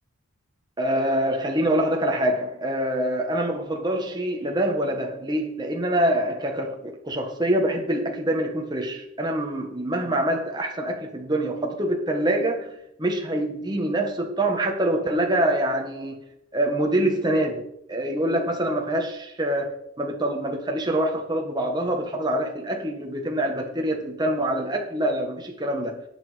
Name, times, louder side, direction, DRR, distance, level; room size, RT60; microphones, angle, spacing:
voice 1, 0.8-16.2 16.5-26.0, right 1 dB, 20° right, 2 dB, 1.5 m, -25 dB
18.5 x 6.2 x 5.1 m, 0.75 s
head